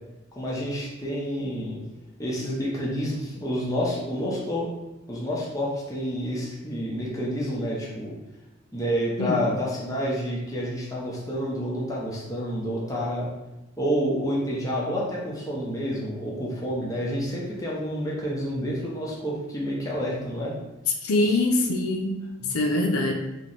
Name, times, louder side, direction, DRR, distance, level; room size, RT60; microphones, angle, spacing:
voice 1, 0.3-1.8 2.2-4.7 5.1-8.1 8.7-13.3 13.8-20.5 21.2-21.4 22.4-22.6, equal, 15° left, -5 dB, 0.8 m, -29 dB
voice 2, 21.0-22.2 22.5-23.1, left 2 dB, 85° left, 2 dB, 0.6 m, -23 dB
3.1 x 3.1 x 4.0 m, 0.95 s
head